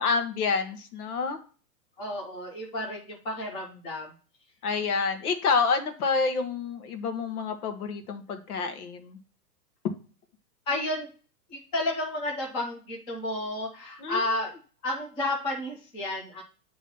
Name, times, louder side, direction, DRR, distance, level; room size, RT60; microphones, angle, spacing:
voice 1, 0.0-1.4 4.6-9.2 9.8-9.9 14.0-14.2, left 4 dB, 65° left, 8 dB, 1.3 m, -28 dB
voice 2, 2.0-4.1 10.7-11.1 11.5-14.5 14.8-16.4, left 1 dB, 10° left, -2 dB, 0.9 m, -31 dB
9.1 x 3.1 x 5.5 m, 0.37 s
hypercardioid pair, 170°, 48 cm